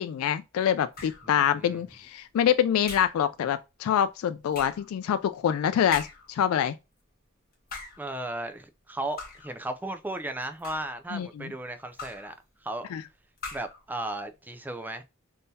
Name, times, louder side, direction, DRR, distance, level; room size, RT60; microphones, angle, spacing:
voice 1, 0.0-6.8 11.1-11.5 12.9-13.0, left 9 dB, 90° left, 0.3 m, -26 dB
sound 1, 0.9-1.4 2.9-3.3 4.5-4.9 5.9-6.4 7.5-8.1 9.2-9.6 10.4-11.0 12.0-12.4 13.4-13.8, left 4 dB, 45° left, 1.1 m, -40 dB
voice 2, 1.2-1.8 8.0-12.3 12.6-12.9 13.5-15.0, right 1 dB, 10° right, 0.3 m, -35 dB
3.6 x 2.7 x 2.6 m
head